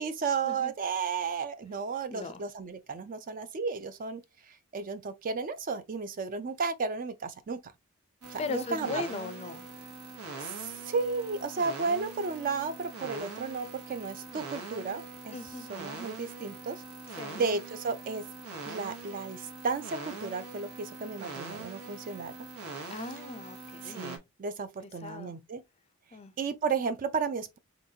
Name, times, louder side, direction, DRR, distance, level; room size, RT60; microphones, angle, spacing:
voice 1, 0.0-7.6 8.3-9.0 10.4-15.4 15.7-16.8 17.1-18.2 18.7-22.3 23.8-25.6 26.4-27.6, right 5 dB, 40° right, 0.4 m, -33 dB
voice 2, 2.1-2.4 8.4-9.6 15.3-15.7 17.2-17.4 22.9-24.0 24.8-25.4 26.1-26.3, left 3 dB, 30° left, 0.4 m, -38 dB
sound 1, 8.2-24.2, right 3 dB, 90° right, 1.1 m, -43 dB
3.8 x 3.4 x 2.7 m
head